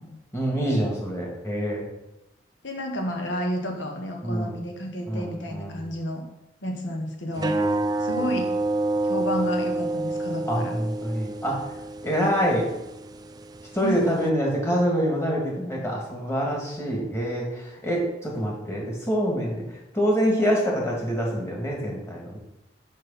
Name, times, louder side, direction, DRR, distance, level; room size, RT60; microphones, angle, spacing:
voice 1, 0.0-1.9 4.2-4.6 5.1-5.8 7.4-7.8 10.5-11.7 12.0-12.7 13.7-22.4, equal, 15° left, -2 dB, 1.9 m, -26 dB
voice 2, 2.6-6.3 6.6-7.6 8.0-8.5 9.0-10.8 13.8-14.1, equal, 75° left, 3 dB, 1.2 m, -30 dB
sound 1, 7.4-14.3, right 2 dB, 20° right, 0.3 m, -29 dB
6.4 x 5.6 x 5.7 m, 0.92 s
head